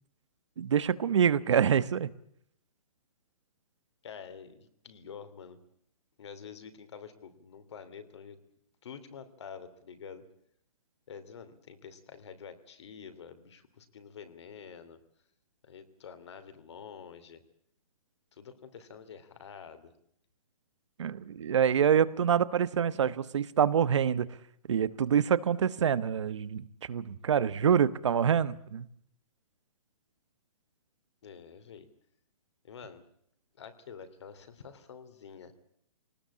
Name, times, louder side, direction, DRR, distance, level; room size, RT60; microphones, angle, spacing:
voice 1, 0.6-2.1 21.0-24.3 24.7-28.9, right 8 dB, 55° right, 16 dB, 1.2 m, -26 dB
voice 2, 4.0-5.6 6.2-8.4 8.8-10.2 11.1-15.0 15.6-17.4 18.3-19.9 31.2-31.9 32.6-33.0 33.5-35.5, left 6 dB, 50° left, 11 dB, 2.9 m, -48 dB
23.5 x 19.0 x 8.6 m, 0.68 s
hypercardioid pair, 170°, 18 cm